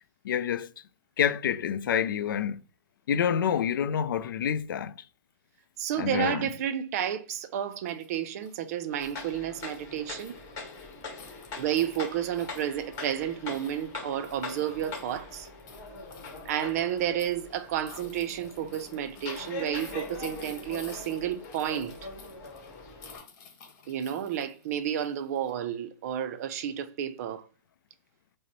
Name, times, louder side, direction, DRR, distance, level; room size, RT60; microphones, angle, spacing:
voice 1, 0.2-0.7 1.2-2.6 3.1-4.9 6.0-6.5, left 8 dB, 75° left, 0.4 m, -27 dB
voice 2, 5.8-10.4 11.6-15.5 16.4-22.0 23.9-27.5, right 10 dB, 45° right, 0.4 m, -31 dB
sound 1, 7.9-25.5, left 5 dB, 45° left, 1.3 m, -53 dB
sound 2, 8.9-23.2, left 3 dB, 30° left, 1.6 m, -42 dB
4.9 x 2.0 x 3.0 m
hypercardioid pair, 140°, 11 cm